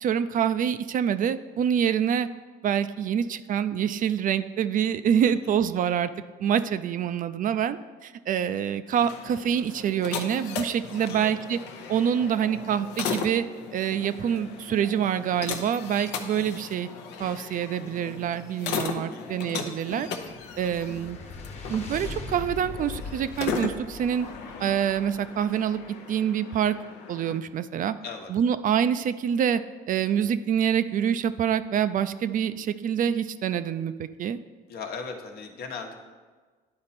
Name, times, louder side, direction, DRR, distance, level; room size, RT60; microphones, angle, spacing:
voice 1, 0.0-2.3 2.6-6.1 6.4-11.6 11.9-13.4 13.7-16.9 17.2-20.1 20.6-21.2 21.7-24.3 24.6-25.8 26.1-26.8 27.1-27.9 28.3-29.6 29.9-34.4, right 8 dB, 50° right, 13 dB, 0.4 m, -26 dB
sound 1, 8.9-27.4, left 6 dB, 90° left, 0.7 m, -37 dB
voice 2, 11.1-11.4 19.1-19.4 28.0-28.3 34.7-35.9, left 5 dB, 65° left, 3 dB, 1.0 m, -38 dB
sound 2, 13.5-13.6 13.9-15.0 15.5-15.9 16.4-16.7 17.2-17.5 18.1-18.4 18.9-19.1 19.9-20.5 20.9-21.1 21.6-22.0, left 3 dB, 25° left, 1.1 m, -45 dB
sound 3, 20.2-25.6, left 3 dB, 40° left, 1.2 m, -41 dB
10.5 x 4.3 x 4.1 m, 1.4 s
cardioid pair, 80°, 17 cm